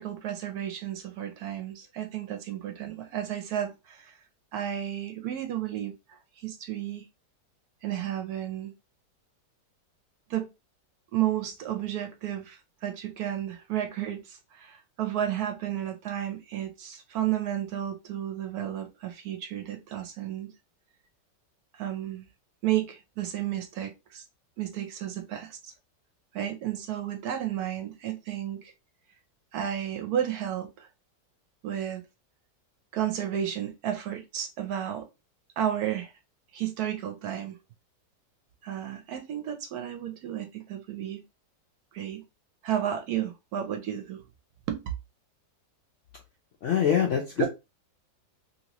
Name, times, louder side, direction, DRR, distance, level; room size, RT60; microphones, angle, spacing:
voice 1, 0.0-4.1 4.5-7.0 7.8-8.7 10.3-10.5 11.1-20.5 21.7-22.3 22.6-24.2 24.6-25.7 26.3-28.7 29.5-30.9 31.6-32.0 32.9-35.1 35.6-36.1 36.5-37.6 38.6-41.2 41.9-42.2 42.6-44.2 44.7-44.8 47.4-47.5, right 11 dB, 70° right, 1.0 m, -32 dB
voice 2, 46.6-47.5, left 8 dB, 70° left, 0.7 m, -24 dB
2.9 x 2.9 x 2.8 m
omnidirectional pair, 1.9 m